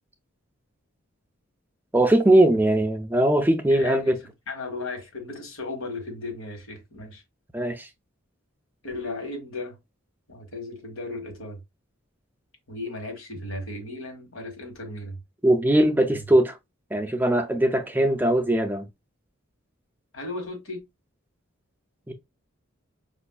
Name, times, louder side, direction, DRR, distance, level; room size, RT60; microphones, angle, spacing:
voice 1, 1.9-4.2 7.5-7.9 15.4-16.6 16.9-18.9 22.1-22.2, right 1 dB, 10° right, 0.4 m, -20 dB
voice 2, 3.7-7.2 8.8-9.8 10.3-11.6 12.7-15.2 16.1-16.2 20.1-20.8, left 2 dB, 85° left, 1.5 m, -35 dB
5.1 x 2.5 x 2.3 m
head